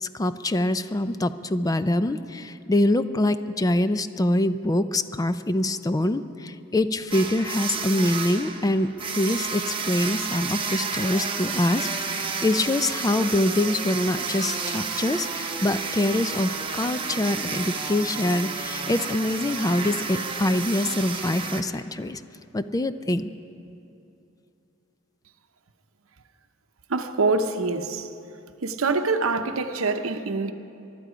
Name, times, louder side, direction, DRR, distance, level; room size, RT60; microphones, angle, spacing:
voice 1, 0.0-22.2 22.5-23.3, left 1 dB, 20° left, 0.4 m, -25 dB
sound 1, 7.1-21.6, right 5 dB, 25° right, 1.0 m, -31 dB
voice 2, 26.9-28.1 28.6-30.5, right 3 dB, 90° right, 0.8 m, -25 dB
23.0 x 12.0 x 5.0 m
head